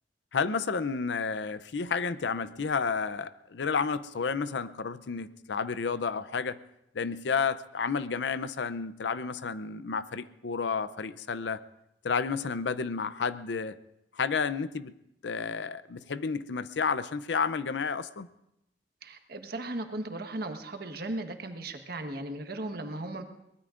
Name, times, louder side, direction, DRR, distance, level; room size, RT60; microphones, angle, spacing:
voice 1, 0.3-6.6 6.9-11.6 12.0-13.7 14.1-14.9 15.2-18.3, left 5 dB, 80° left, 15 dB, 0.6 m, -31 dB
voice 2, 19.0-23.2, right 2 dB, 60° right, 6 dB, 1.3 m, -36 dB
23.0 x 19.5 x 2.5 m, 0.83 s
head